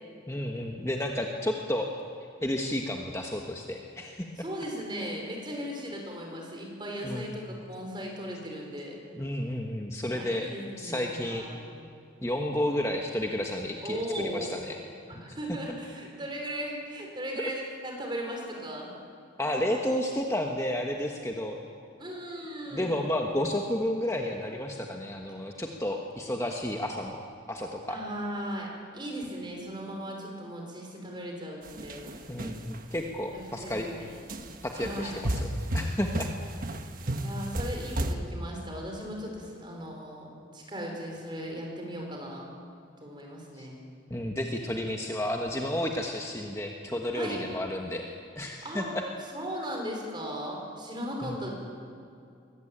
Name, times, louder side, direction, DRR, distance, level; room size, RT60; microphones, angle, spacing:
voice 1, 0.3-1.9 2.4-4.3 7.0-7.3 9.1-10.5 10.8-11.5 12.2-14.8 19.4-21.6 22.7-27.2 27.5-28.0 32.3-33.9 34.7-35.5 35.7-36.3 43.6-43.7 44.1-48.0 48.4-48.8 51.2-51.4, left 1 dB, 15° left, 1 dB, 1.3 m, -31 dB
voice 2, 4.4-9.0 10.1-11.7 13.8-14.5 15.2-18.9 19.4-19.6 22.0-22.9 27.9-32.1 33.3-34.2 34.7-35.3 37.2-42.5 43.0-43.8 47.1-47.4 48.6-48.9 49.3-51.5, equal, 25° right, 0 dB, 5.0 m, -37 dB
sound 1, 31.6-33.0 33.6-33.8 34.3-38.1, right 1 dB, 45° right, 1.4 m, -33 dB
23.0 x 18.5 x 8.8 m, 2.5 s
head